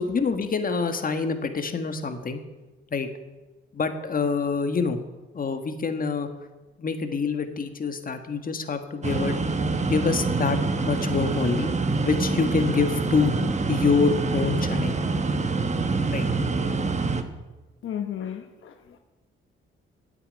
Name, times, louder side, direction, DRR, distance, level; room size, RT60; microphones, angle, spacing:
voice 1, 0.0-2.4 2.9-3.1 3.7-5.0 5.3-6.3 6.8-9.4 9.8-11.7 12.0-13.3 13.7-15.0 16.1-16.3, left 5 dB, 40° left, 8 dB, 1.5 m, -26 dB
sound 1, 9.0-17.2, right 3 dB, 35° right, 1.1 m, -26 dB
voice 2, 17.8-19.0, left 9 dB, 70° left, 7 dB, 1.0 m, -34 dB
9.4 x 8.5 x 9.7 m, 1.2 s
cardioid pair, 80°, 21 cm